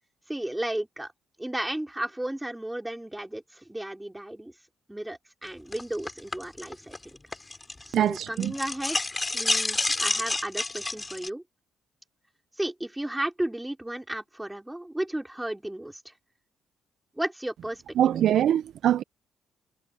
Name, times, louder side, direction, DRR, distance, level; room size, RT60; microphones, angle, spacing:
voice 1, 0.3-1.1 1.4-4.5 4.9-7.1 7.9-9.0 9.3-11.4 12.6-16.1 17.2-18.6, right 1 dB, 10° right, 5.0 m, -34 dB
sound 1, 5.7-7.9 8.2-11.3, left 2 dB, 20° left, 3.8 m, -29 dB
voice 2, 7.9-8.5 18.0-19.0, right 11 dB, 70° right, 0.6 m, -23 dB
cardioid pair, 90°, 0 cm